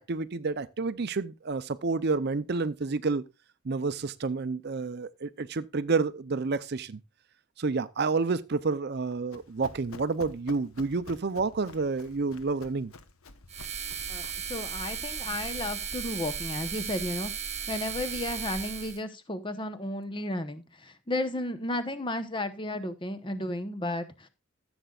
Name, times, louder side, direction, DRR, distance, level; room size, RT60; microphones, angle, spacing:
voice 1, 0.1-3.2 3.6-7.0 7.6-12.9, right 4 dB, 50° right, 0.5 m, -29 dB
Run, 8.9-14.5, left 3 dB, 80° left, 1.1 m, -49 dB
sound 1, 13.5-19.0, right 7 dB, 30° right, 1.6 m, -36 dB
voice 2, 14.1-17.3 17.7-24.3, left 1 dB, 20° left, 0.9 m, -33 dB
14.5 x 8.0 x 2.4 m
head